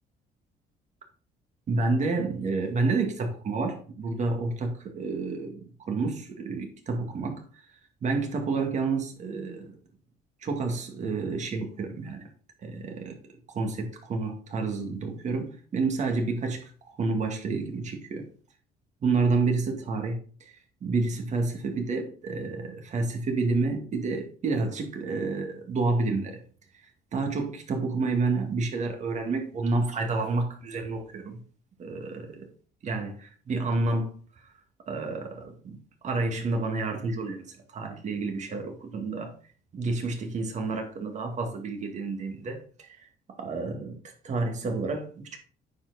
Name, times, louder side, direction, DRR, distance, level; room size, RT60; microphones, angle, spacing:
voice 1, 1.7-5.6 5.9-7.4 8.0-9.7 10.4-12.3 12.6-13.2 13.5-16.7 17.0-18.3 19.0-20.2 20.8-26.4 27.1-31.4 31.8-32.5 32.8-34.2 34.9-35.8 36.0-39.3 39.7-43.1 43.4-44.0 44.2-45.4, right 3 dB, 45° right, 2.1 m, -29 dB
9.4 x 4.7 x 4.0 m
cardioid pair, 110°, 17 cm